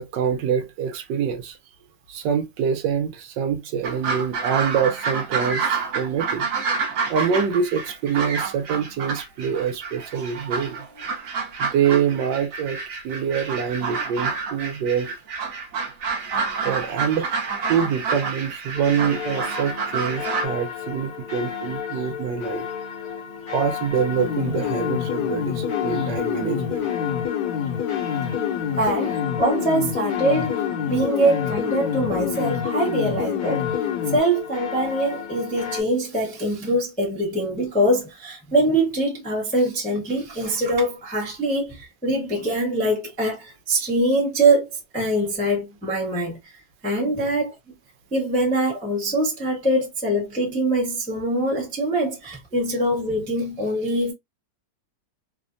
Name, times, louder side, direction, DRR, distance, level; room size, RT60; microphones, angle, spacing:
voice 1, 0.0-1.6 2.1-6.5 7.1-10.8 11.6-15.1 16.5-17.3 17.7-22.7 23.5-26.9 47.2-47.3, right 7 dB, 75° right, 1.2 m, -25 dB
sound 1, 3.8-20.4, right 5 dB, 60° right, 1.0 m, -28 dB
sound 2, 18.7-35.8, left 8 dB, 55° left, 0.8 m, -33 dB
sound 3, 24.2-34.2, left 8 dB, 75° left, 1.2 m, -27 dB
voice 2, 28.8-33.7 34.1-44.7 44.9-46.4 46.8-47.5 48.1-54.1, right 1 dB, 10° left, 0.5 m, -23 dB
3.2 x 2.1 x 2.5 m
omnidirectional pair, 2.0 m